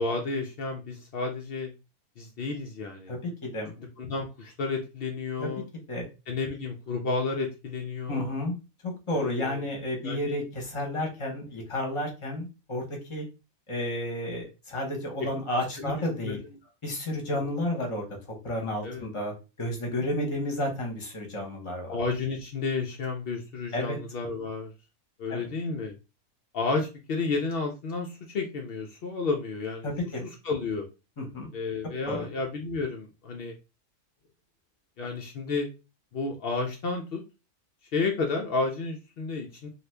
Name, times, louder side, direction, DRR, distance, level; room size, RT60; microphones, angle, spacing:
voice 1, 0.0-1.7 2.2-3.1 4.0-5.6 6.3-8.3 9.1-9.6 10.0-10.4 15.8-15.9 16.2-16.4 17.3-17.4 18.8-19.1 21.9-24.7 25.2-25.9 26.5-29.9 30.4-30.9 31.5-33.5 35.0-35.7 36.1-37.2 37.9-39.7, left 4 dB, 75° left, 2 dB, 0.5 m, -31 dB
voice 2, 3.1-3.7 5.4-6.1 8.1-8.6 8.8-13.2 13.7-16.4 16.8-22.0 23.7-24.0 25.3-25.5 29.8-30.3 31.2-31.5 32.0-32.3, left 1 dB, 25° left, 1 dB, 0.7 m, -32 dB
2.7 x 2.4 x 3.2 m, 0.29 s
omnidirectional pair, 1.6 m